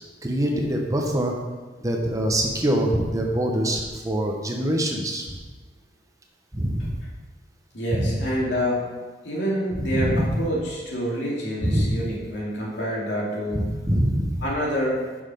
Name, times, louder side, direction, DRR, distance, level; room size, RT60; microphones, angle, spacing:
voice 1, 0.2-1.3 1.8-5.3 6.5-6.9 7.9-8.2 9.9-10.4 11.6-12.0 13.5-14.4, right 1 dB, 20° right, 1 dB, 0.9 m, -24 dB
voice 2, 7.7-8.8 9.2-13.7 14.4-15.0, equal, 85° left, -4 dB, 2.3 m, -27 dB
6.7 x 5.9 x 5.1 m, 1.3 s
head